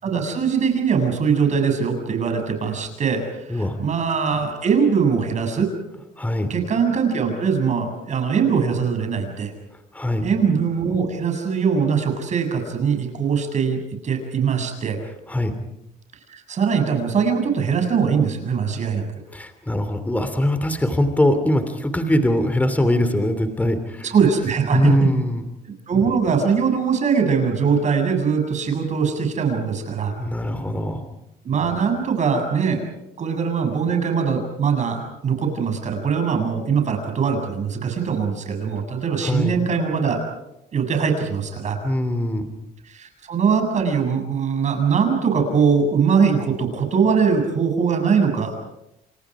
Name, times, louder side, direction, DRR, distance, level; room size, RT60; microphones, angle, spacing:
voice 1, 0.0-5.7 6.5-9.5 10.2-15.0 16.3-19.1 24.0-25.2 25.9-30.1 31.4-32.8 33.2-40.2 40.7-41.8 42.9-48.5, right 6 dB, 45° right, 5 dB, 7.5 m, -21 dB
voice 2, 6.2-6.5 9.9-10.3 15.3-15.5 19.3-24.1 24.7-25.4 30.2-31.0 39.2-39.6 41.8-42.5, left 1 dB, 10° left, 9 dB, 3.0 m, -22 dB
29.0 x 27.5 x 5.0 m, 0.85 s
cardioid pair, 110°, 17 cm